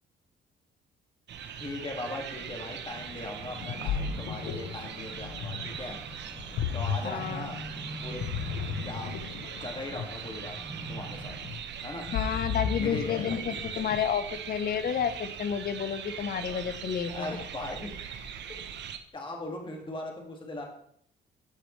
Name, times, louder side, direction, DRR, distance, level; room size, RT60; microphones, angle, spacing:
sound 1, 1.3-19.0, right 8 dB, 65° right, 0.8 m, -41 dB
voice 1, 1.6-6.0 6.7-7.6 8.0-8.2 8.8-9.1 9.6-10.6 10.9-11.4 11.8-12.1 12.8-13.4 17.1-17.9 18.5-18.6 19.1-20.7, left 2 dB, 25° left, 1 dB, 1.9 m, -39 dB
sound 2, 2.9-11.5, right 1 dB, 20° right, 1.8 m, -44 dB
Ocean, 3.4-14.2, left 7 dB, 90° left, 0.8 m, -35 dB
voice 2, 7.0-7.5 12.1-17.4, left 8 dB, 50° left, 11 dB, 0.7 m, -31 dB
13.0 x 5.0 x 3.1 m, 0.66 s
cardioid pair, 90°, 20 cm